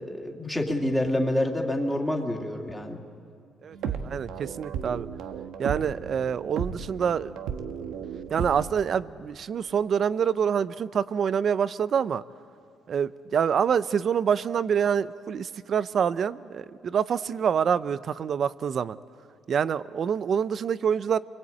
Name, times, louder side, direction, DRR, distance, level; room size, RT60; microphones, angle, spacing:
voice 1, 0.0-3.0, left 1 dB, 5° left, 1 dB, 2.7 m, -27 dB
voice 2, 3.6-5.1 5.6-7.3 8.3-12.2 12.9-19.0 19.5-21.2, right 7 dB, 50° right, 16 dB, 0.7 m, -26 dB
sound 1, 3.7-8.7, right 7 dB, 90° right, 1.4 m, -34 dB
28.5 x 22.5 x 8.6 m, 2.4 s
cardioid pair, 120°, 0 cm